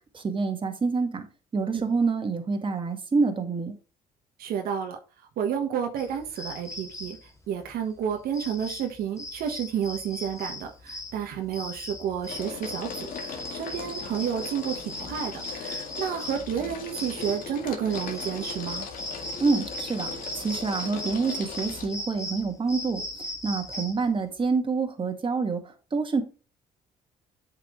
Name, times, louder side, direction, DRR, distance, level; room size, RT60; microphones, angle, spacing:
voice 1, 0.1-1.3 1.5-3.7 19.4-20.1 20.4-26.2, right 4 dB, 35° right, 2.0 m, -27 dB
voice 2, 4.4-5.0 5.4-7.2 7.5-18.9, right 8 dB, 80° right, 1.4 m, -31 dB
sound 1, 6.0-24.2, left 1 dB, 20° left, 1.8 m, -38 dB
sound 2, 9.8-10.4 10.7-21.9, left 5 dB, 70° left, 2.0 m, -39 dB
7.9 x 5.9 x 3.2 m
cardioid pair, 85°, 15 cm